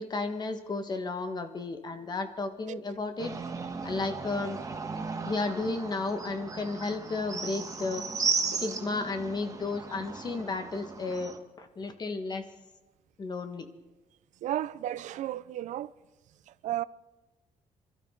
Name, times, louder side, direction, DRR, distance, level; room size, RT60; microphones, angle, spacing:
voice 1, 0.0-3.3 3.8-4.6 5.2-8.1 8.6-12.4 13.2-13.7, left 3 dB, 35° left, 1.5 m, -33 dB
sound 1, 3.2-11.4, right 4 dB, 25° right, 1.5 m, -35 dB
voice 2, 14.4-15.9 16.5-16.8, right 13 dB, 75° right, 0.5 m, -34 dB
25.5 x 13.0 x 3.8 m
cardioid pair, 120°, 13 cm